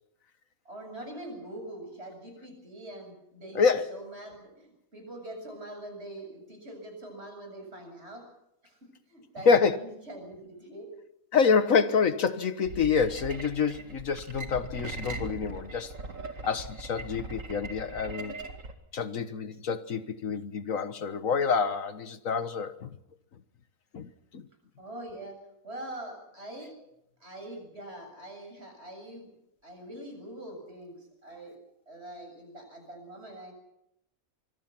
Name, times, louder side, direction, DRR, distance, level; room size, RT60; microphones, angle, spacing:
voice 1, 0.6-8.2 8.6-8.8 9.1-10.9 24.8-25.4 25.6-26.7 27.2-29.3 29.6-31.5 31.9-33.5, right 1 dB, 45° right, 5 dB, 7.7 m, -43 dB
voice 2, 9.5-9.8 11.3-15.9 16.4-18.4 18.9-22.9 23.9-24.4, left 5 dB, 65° left, 11 dB, 1.6 m, -27 dB
sound 1, 12.6-18.7, right 3 dB, 60° right, 2.5 m, -40 dB
25.5 x 23.5 x 6.0 m, 0.81 s
omnidirectional pair, 1.5 m